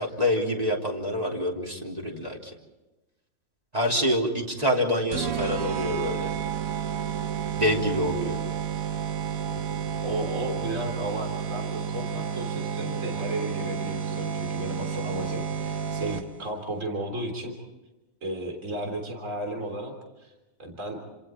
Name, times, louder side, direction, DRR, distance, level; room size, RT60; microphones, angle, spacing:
voice 1, 0.0-2.5 3.7-6.3 7.6-8.4, left 1 dB, 30° right, -1 dB, 3.5 m, -26 dB
sound 1, 5.1-16.5, right 8 dB, 85° right, 1.4 m, -31 dB
voice 2, 10.0-17.5 18.2-19.9 20.2-20.3 20.6-21.0, right 1 dB, 65° right, 3 dB, 3.9 m, -34 dB
29.0 x 26.5 x 4.5 m, 1.1 s
omnidirectional pair, 1.4 m